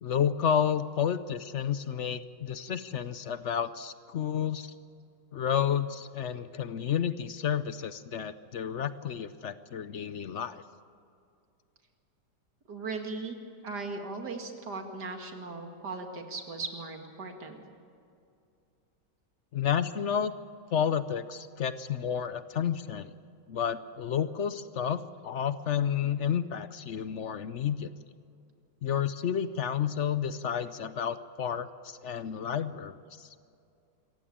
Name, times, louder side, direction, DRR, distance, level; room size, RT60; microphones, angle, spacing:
voice 1, 0.0-4.7 5.3-10.6 19.5-20.3 20.7-23.1 23.5-27.9 28.8-33.3, left 8 dB, 60° left, 13 dB, 0.7 m, -31 dB
voice 2, 12.7-13.4 13.6-17.6, right 3 dB, 65° right, 4 dB, 2.7 m, -38 dB
26.0 x 15.5 x 8.8 m, 2.5 s
omnidirectional pair, 1.9 m